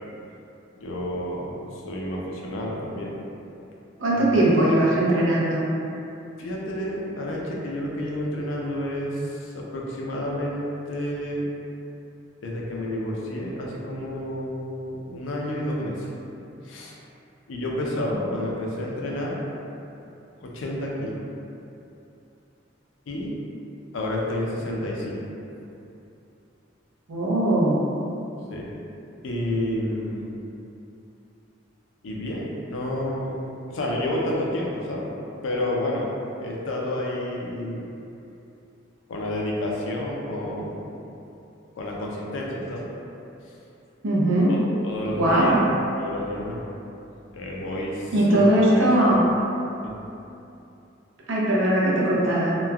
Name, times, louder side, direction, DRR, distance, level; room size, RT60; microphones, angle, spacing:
voice 1, 0.8-3.2 4.1-4.4 6.4-11.5 12.4-16.1 16.6-17.0 17.5-19.4 20.4-21.2 23.1-23.4 23.9-25.2 28.5-28.7 29.2-30.4 32.0-35.1 35.4-36.1 36.4-37.9 39.1-40.9 41.8-42.9 44.5-45.6 45.9-46.6 47.3-49.1 49.8-49.9, left 1 dB, 85° left, -3 dB, 0.4 m, -30 dB
voice 2, 4.0-5.6 27.1-27.8 44.0-44.5 45.2-45.5 48.1-49.2 51.3-52.6, right 1 dB, 85° right, -5 dB, 0.6 m, -20 dB
3.0 x 2.2 x 2.3 m, 2.8 s
head